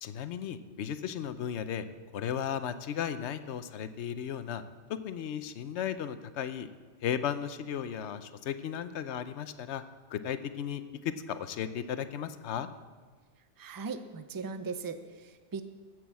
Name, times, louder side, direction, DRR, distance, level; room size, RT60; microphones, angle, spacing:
voice 1, 0.0-1.9 2.1-4.6 4.9-6.7 7.0-9.8 10.1-12.7, left 9 dB, 75° left, 11 dB, 1.0 m, -35 dB
voice 2, 13.6-15.6, right 4 dB, 25° right, 9 dB, 0.5 m, -38 dB
15.0 x 6.3 x 7.5 m, 1.5 s
omnidirectional pair, 1.2 m